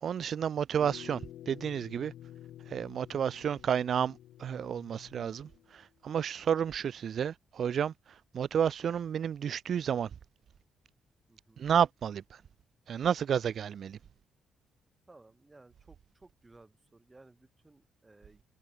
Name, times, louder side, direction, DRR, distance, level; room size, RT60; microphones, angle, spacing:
voice 1, 0.0-2.1 2.7-7.9 8.3-10.1 11.6-12.2 12.9-14.0, right 8 dB, 55° right, 0.5 m, -31 dB
sound 1, 0.8-5.8, left 12 dB, 80° left, 1.3 m, -50 dB
voice 2, 11.3-11.6 15.1-18.4, right 2 dB, 20° right, 1.7 m, -58 dB
cardioid pair, 90°, 0 cm